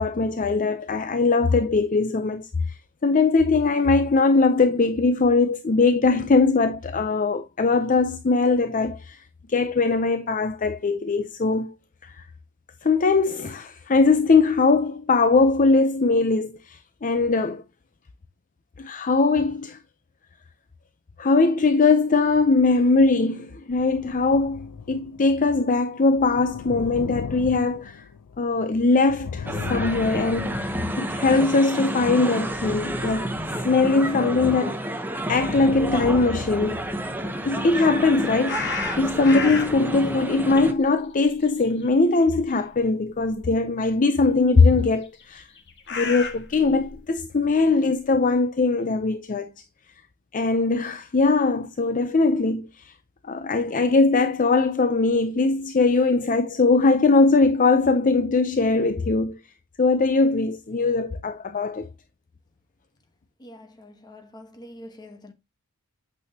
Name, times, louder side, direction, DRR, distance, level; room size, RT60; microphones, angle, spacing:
voice 1, 0.0-11.8 12.0-12.2 12.8-17.6 18.8-19.8 21.2-28.1 28.4-33.3 33.6-34.8 35.3-36.8 37.4-45.5 45.9-49.5 50.3-52.9 53.2-59.4 59.8-61.9, left 3 dB, 35° left, 0.5 m, -21 dB
sound 1, 23.7-31.6 32.2-34.6 35.2-37.8 38.4-40.2, left 6 dB, 85° left, 0.4 m, -38 dB
sound 2, 29.5-40.7, right 1 dB, 10° right, 0.8 m, -30 dB
sound 3, 38.5-39.9 40.3-42.0 42.3-42.5 43.3-43.4 45.2-47.0, left 5 dB, 50° left, 1.7 m, -32 dB
voice 2, 63.4-65.3, left 1 dB, 20° left, 1.1 m, -45 dB
8.6 x 6.3 x 2.7 m
head